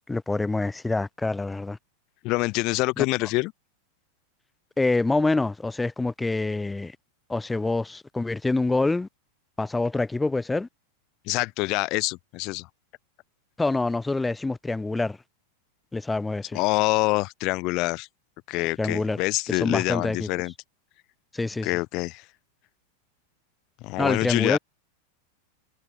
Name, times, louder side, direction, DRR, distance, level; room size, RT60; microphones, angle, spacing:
voice 1, 0.1-1.8 3.0-3.3 4.8-7.0 7.3-9.1 9.6-10.7 13.6-15.2 15.9-16.6 18.8-19.2 19.5-20.3 21.3-21.7 24.0-24.6, left 3 dB, 10° left, 2.6 m, -26 dB
voice 2, 2.2-3.5 11.3-12.7 16.5-18.1 18.5-20.5 21.6-22.2 23.8-24.6, left 23 dB, 40° left, 1.2 m, -26 dB
figure-of-eight pair, 90°, 0 cm